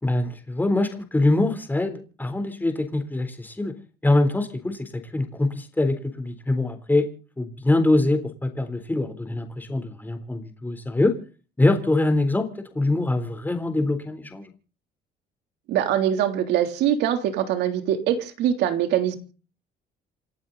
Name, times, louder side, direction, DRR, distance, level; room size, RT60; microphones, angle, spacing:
voice 1, 0.0-3.7 4.0-7.1 7.4-11.2 11.6-12.5 12.7-14.5, left 2 dB, 10° left, 3.7 m, -24 dB
voice 2, 15.7-19.2, right 10 dB, 80° right, 3.3 m, -23 dB
29.0 x 12.0 x 4.1 m
cardioid pair, 110°, 17 cm